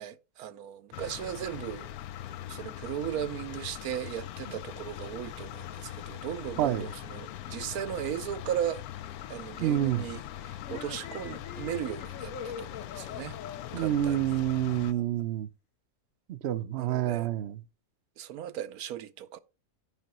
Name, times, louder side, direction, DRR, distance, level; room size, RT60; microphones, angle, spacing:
voice 1, 0.0-1.9 2.5-8.8 9.3-13.4 13.8-14.4 16.8-17.3 18.2-19.4, right 10 dB, 80° right, 1.1 m, -37 dB
sound 1, 0.9-14.9, left 12 dB, 85° left, 1.1 m, -41 dB
voice 2, 9.6-10.1 13.7-15.5 16.3-17.6, right 12 dB, 60° right, 0.7 m, -28 dB
sound 2, 10.6-15.2, left 7 dB, 65° left, 1.3 m, -44 dB
13.0 x 5.1 x 3.0 m
omnidirectional pair, 1.5 m